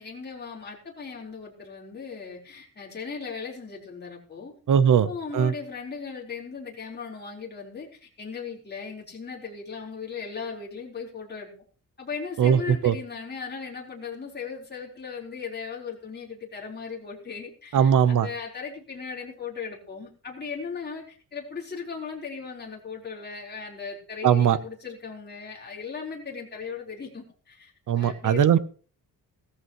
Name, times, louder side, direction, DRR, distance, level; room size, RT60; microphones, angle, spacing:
voice 1, 0.0-4.5 5.1-11.5 12.0-28.6, left 5 dB, 30° left, -2 dB, 4.3 m, -37 dB
voice 2, 4.7-5.5 12.4-12.9 17.7-18.3 24.2-24.6 27.9-28.6, right 8 dB, 60° right, 15 dB, 1.0 m, -20 dB
16.5 x 14.0 x 3.1 m, 0.40 s
wide cardioid pair, 140°, 35 cm